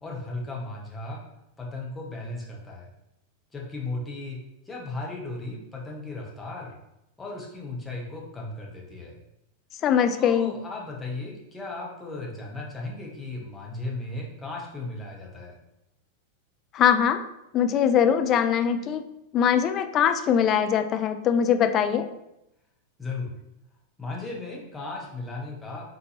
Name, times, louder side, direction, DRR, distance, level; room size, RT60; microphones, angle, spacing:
voice 1, 0.0-1.2 1.6-2.9 3.5-6.7 7.2-9.2 10.1-15.6 23.0-23.3 24.0-25.9, left 2 dB, 10° left, -3 dB, 1.0 m, -36 dB
voice 2, 9.8-10.5 16.7-17.2 17.5-19.0 19.3-22.1, left 8 dB, 30° left, 9 dB, 0.3 m, -22 dB
4.0 x 3.4 x 2.8 m, 0.86 s
figure-of-eight pair, 90°, 0 cm